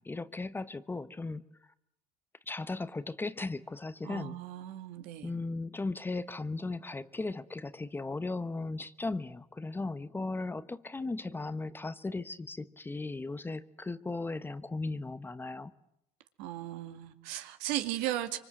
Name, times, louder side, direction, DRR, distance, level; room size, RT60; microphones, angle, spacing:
voice 1, 0.0-1.4 2.5-4.4 5.2-15.7, left 3 dB, 15° left, 15 dB, 1.0 m, -37 dB
voice 2, 4.0-5.3 16.4-18.4, right 13 dB, 85° right, 8 dB, 2.1 m, -36 dB
25.0 x 24.0 x 7.8 m, 0.80 s
cardioid pair, 105°, 15 cm